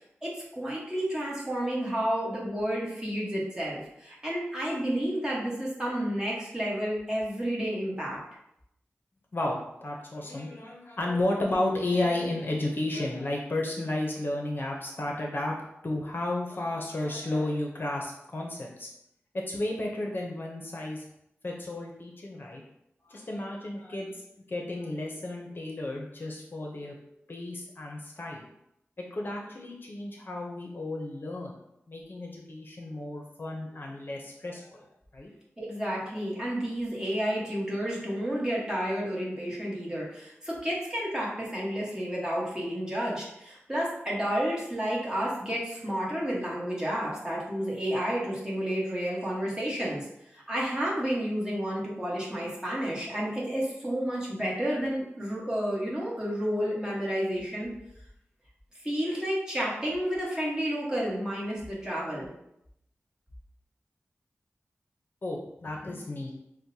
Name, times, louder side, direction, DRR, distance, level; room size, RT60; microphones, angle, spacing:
voice 1, 0.2-8.2 35.6-57.7 58.8-62.3, equal, 15° right, -5 dB, 1.3 m, -31 dB
voice 2, 9.3-15.5 15.8-18.9 19.3-21.0 21.4-22.6 23.0-26.9 27.3-28.5 29.0-31.5 31.9-34.9 35.1-35.3 65.2-66.3, left 1 dB, 50° left, -1 dB, 0.6 m, -33 dB
6.1 x 2.1 x 2.7 m, 0.79 s
wide cardioid pair, 85°, 5 cm